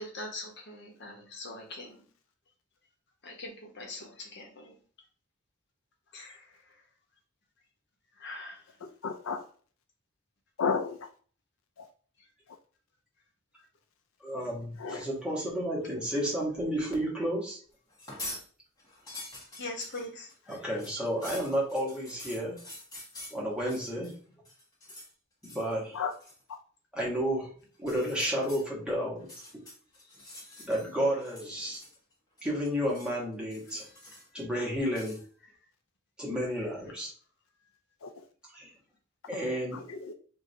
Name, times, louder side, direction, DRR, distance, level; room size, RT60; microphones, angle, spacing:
voice 1, 0.0-2.1 3.2-4.8 6.1-6.8 8.2-8.7 19.6-20.6 30.2-30.7 34.0-34.2, left 2 dB, 55° left, 1 dB, 1.2 m, -43 dB
voice 2, 8.8-9.4 10.6-11.1 11.8-11.9 14.8-15.1 25.9-26.1 38.0-38.2 39.7-40.1, left 5 dB, 75° left, 6 dB, 0.5 m, -33 dB
voice 3, 14.2-17.6 20.5-22.5 23.3-24.1 25.4-26.0 26.9-27.5 27.8-29.3 29.5-29.6 30.6-31.8 32.4-33.8 34.3-35.2 36.2-37.1 38.5-38.7 39.3-39.8, equal, 5° right, -5 dB, 1.6 m, -31 dB
sound 1, 17.9-18.4 18.8-24.2 24.4-25.1 25.4-25.7 26.1-26.4 27.7-28.6 29.2-30.9 31.2-32.1 32.4-33.2 33.5-34.4 34.9-35.2, left 2 dB, 20° left, 1.6 m, -46 dB
3.7 x 2.7 x 4.5 m, 0.42 s
head